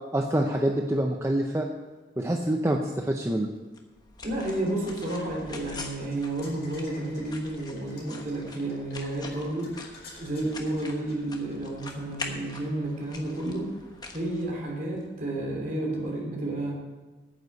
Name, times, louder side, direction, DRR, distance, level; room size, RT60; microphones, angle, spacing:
voice 1, 0.1-1.7 2.2-3.5, right 1 dB, 15° right, 2 dB, 0.6 m, -26 dB
sound 1, 3.7-15.1, left 3 dB, 20° left, 1.1 m, -44 dB
voice 2, 4.2-9.7 10.1-13.7 14.1-16.7, right 1 dB, 45° right, -1 dB, 3.1 m, -31 dB
sound 2, 4.4-12.1, left 2 dB, 65° left, 4.8 m, -52 dB
9.4 x 8.0 x 7.8 m, 1.3 s
head